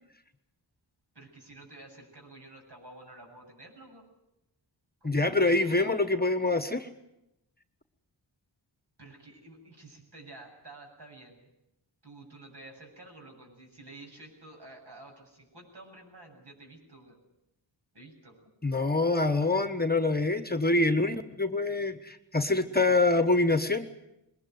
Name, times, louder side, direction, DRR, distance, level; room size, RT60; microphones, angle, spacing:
voice 1, 1.1-4.1 5.0-6.1 9.0-11.5 12.0-17.2 17.9-18.4, right 2 dB, 60° right, 1 dB, 7.8 m, -50 dB
voice 2, 5.0-6.9 18.6-23.9, left 2 dB, 20° left, 9 dB, 1.3 m, -25 dB
21.5 x 19.5 x 9.3 m, 0.89 s
wide cardioid pair, 65°, 45 cm